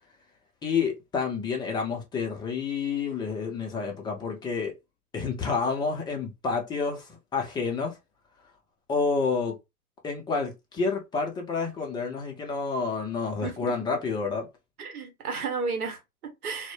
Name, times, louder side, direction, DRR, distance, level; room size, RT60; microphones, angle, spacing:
voice 1, 0.6-4.7 5.1-8.0 8.9-9.6 10.0-14.5, left 5 dB, 10° left, 0.4 m, -29 dB
voice 2, 13.4-13.7 14.8-16.7, right 4 dB, 80° right, 1.0 m, -33 dB
2.1 x 2.0 x 3.1 m
hypercardioid pair, 100°, 44 cm